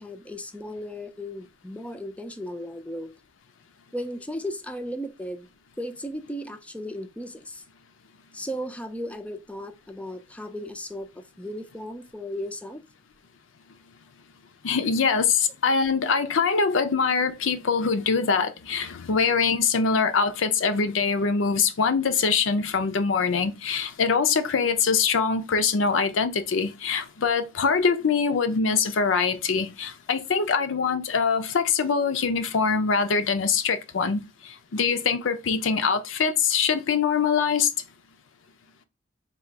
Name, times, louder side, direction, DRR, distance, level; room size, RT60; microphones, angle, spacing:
voice 1, 0.0-3.1 3.9-5.5 5.8-7.6 8.3-12.8 24.3-24.5, equal, 5° left, 0.4 m, -36 dB
voice 2, 14.6-37.7, left 5 dB, 80° left, 0.6 m, -23 dB
3.8 x 2.4 x 4.5 m
head